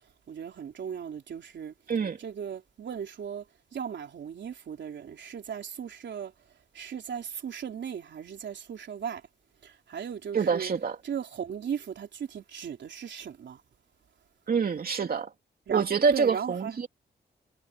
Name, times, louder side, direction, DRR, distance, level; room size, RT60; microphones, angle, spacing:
voice 1, 0.3-1.7 2.2-3.4 3.7-6.3 6.7-9.2 9.6-10.7 11.0-13.6 15.7-16.8, right 8 dB, 85° right, 3.8 m, -37 dB
voice 2, 10.3-11.0 14.5-15.3 15.7-16.9, right 5 dB, 55° right, 2.9 m, -26 dB
wide cardioid pair, 135°, 18 cm